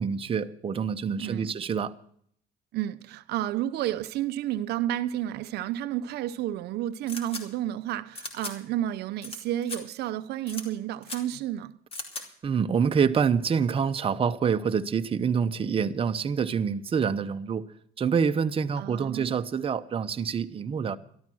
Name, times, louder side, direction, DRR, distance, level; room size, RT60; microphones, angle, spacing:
voice 1, 0.0-1.9 12.4-17.6 18.0-21.0, right 6 dB, 35° right, 0.8 m, -26 dB
voice 2, 1.2-1.5 2.7-11.8 18.8-19.3, right 12 dB, 75° right, 0.6 m, -31 dB
sound 1, 7.1-7.4 8.1-8.5 9.2-9.4 9.6-9.8 10.5-10.6 11.0-11.2 11.9-12.2, left 2 dB, 35° left, 2.8 m, -37 dB
13.0 x 12.5 x 6.1 m
cardioid pair, 110°, 17 cm